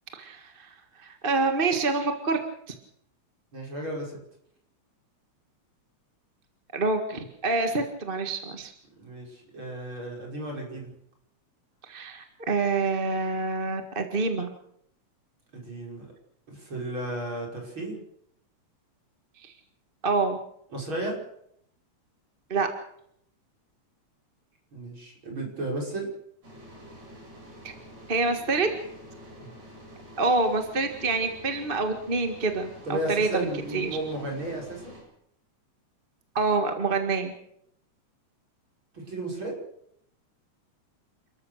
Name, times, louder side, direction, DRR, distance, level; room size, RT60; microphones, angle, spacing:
voice 1, 0.1-2.4 2.7-2.8 6.7-8.7 11.8-14.5 19.4-19.5 20.0-20.4 22.5-22.7 27.6-27.7 28.1-28.7 30.2-33.4 33.7-33.9 36.3-37.3, right 3 dB, 25° right, 6 dB, 1.4 m, -27 dB
voice 2, 3.5-4.2 9.0-10.9 15.5-16.1 16.5-18.0 20.7-21.2 24.7-26.1 29.4-29.5 32.8-35.0 38.9-39.6, right 1 dB, 40° right, 0 dB, 6.6 m, -34 dB
sound 1, 26.4-35.0, equal, 80° right, 9.6 m, -47 dB
29.0 x 14.0 x 6.6 m, 0.72 s
omnidirectional pair, 3.3 m